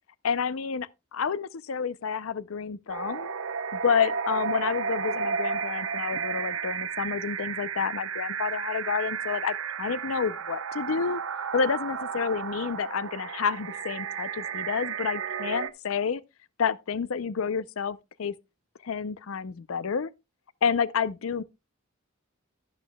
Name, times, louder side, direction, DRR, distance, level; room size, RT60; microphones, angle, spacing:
voice 1, 0.2-3.3 3.7-11.2 11.5-16.2 16.6-18.3 18.8-20.1 20.6-21.4, left 6 dB, 80° left, 0.5 m, -29 dB
sound 1, 2.9-15.7, right 6 dB, 80° right, 0.9 m, -33 dB
12.0 x 11.5 x 2.2 m
head